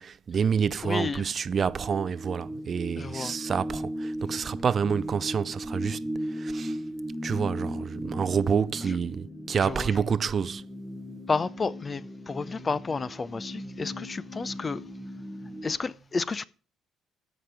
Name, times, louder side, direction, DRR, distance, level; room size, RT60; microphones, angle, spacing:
voice 1, 0.0-6.8 7.2-10.7, right 6 dB, 45° right, 0.5 m, -28 dB
voice 2, 0.8-1.2 3.0-3.3 9.6-9.9 11.3-14.8 15.6-16.5, left 4 dB, 30° left, 0.5 m, -31 dB
sound 1, 1.5-15.8, equal, ahead, 1.1 m, -37 dB
13.5 x 5.1 x 5.7 m
cardioid pair, 85°, 0 cm